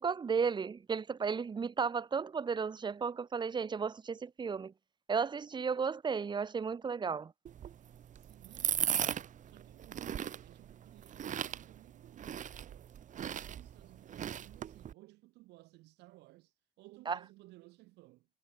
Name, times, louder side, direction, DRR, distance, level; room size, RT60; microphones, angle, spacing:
voice 1, 0.0-4.7 5.1-7.3 17.1-17.2, right 5 dB, 25° right, 1.1 m, -34 dB
sound 1, 7.5-14.9, right 9 dB, 50° right, 1.6 m, -38 dB
voice 2, 8.1-13.0 13.2-18.3, right 19 dB, 90° right, 7.7 m, -58 dB
cardioid pair, 110°, 17 cm